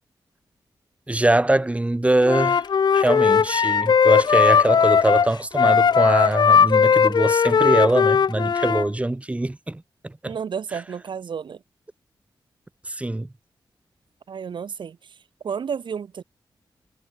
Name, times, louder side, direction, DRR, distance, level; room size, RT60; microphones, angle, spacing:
voice 1, 1.1-2.6 2.9-10.4 12.8-13.3, right 1 dB, 15° right, 3.0 m, -23 dB
Wind instrument woodwind instrument, 2.2-8.9, left 6 dB, 60° left, 0.6 m, -18 dB
voice 2, 10.2-11.6 14.3-16.2, right 7 dB, 70° right, 1.6 m, -32 dB
wide cardioid pair, 100°, 8 cm